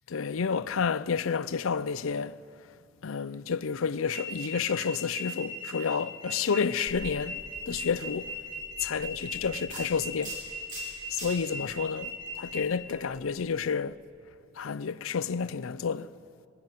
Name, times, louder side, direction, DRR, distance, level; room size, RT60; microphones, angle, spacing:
voice 1, 0.1-2.4 3.0-8.3 8.8-10.4 11.1-12.1 12.4-14.0 14.6-16.1, left 6 dB, 85° left, 0.5 m, -30 dB
sound 1, 4.1-12.6, right 2 dB, 70° right, 7.8 m, -39 dB
sound 2, 6.9-13.5, right 1 dB, 40° right, 5.9 m, -47 dB
20.5 x 17.5 x 9.3 m
head